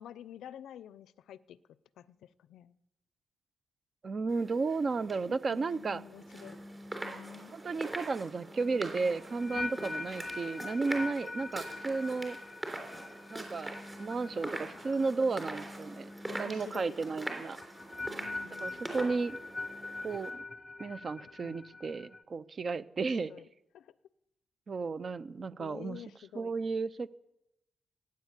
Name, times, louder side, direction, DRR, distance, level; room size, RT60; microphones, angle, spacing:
voice 1, 0.0-1.6 2.0-2.7 5.3-6.6 7.0-7.5 9.5-9.9 14.3-15.1 16.3-17.0 18.0-19.0 21.2-21.8 23.0-23.5 23.7-23.9 25.6-26.5, left 10 dB, 85° left, 17 dB, 0.5 m, -50 dB
voice 2, 4.0-6.0 7.5-12.4 13.3-13.7 14.0-17.6 18.6-19.4 20.0-20.4 20.8-23.3 24.7-26.0 26.3-27.2, right 4 dB, 35° right, 17 dB, 0.5 m, -33 dB
sound 1, 4.3-20.3, right 1 dB, 15° right, 3.4 m, -43 dB
sound 2, 8.6-15.7 16.0-16.4 17.6-22.2, left 3 dB, 25° left, 0.5 m, -43 dB
17.0 x 9.5 x 8.2 m, 0.91 s
cardioid pair, 135°, 0 cm